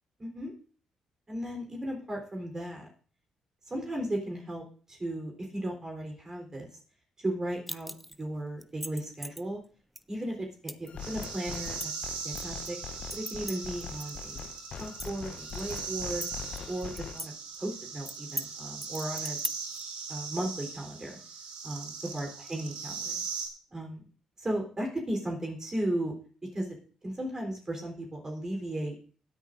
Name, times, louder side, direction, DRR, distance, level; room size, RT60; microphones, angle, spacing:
voice 1, 0.2-0.5 1.3-2.9 3.7-6.7 7.2-7.9 8.2-9.6 10.1-11.9 12.2-12.8 13.1-14.5 14.8-16.3 16.7-17.3 17.6-19.4 20.1-21.2 21.6-23.1 23.7-24.1 24.4-26.1 26.5-26.8 27.0-28.9, right 1 dB, 30° right, 1 dB, 3.7 m, -35 dB
sound 1, 7.7-8.2 8.6-9.4 10.0-10.1 10.7-10.9 11.2-12.7 13.1-14.1 14.4-14.5 14.8-15.8 16.2-17.3 17.5-17.6 18.1-18.5 18.8-19.8, equal, ahead, 0.6 m, -39 dB
sound 2, 10.9-17.2, left 8 dB, 60° left, 0.8 m, -43 dB
sound 3, 11.0-23.5, right 5 dB, 70° right, 1.8 m, -40 dB
16.5 x 9.7 x 2.6 m, 0.41 s
hypercardioid pair, 50°, 2 cm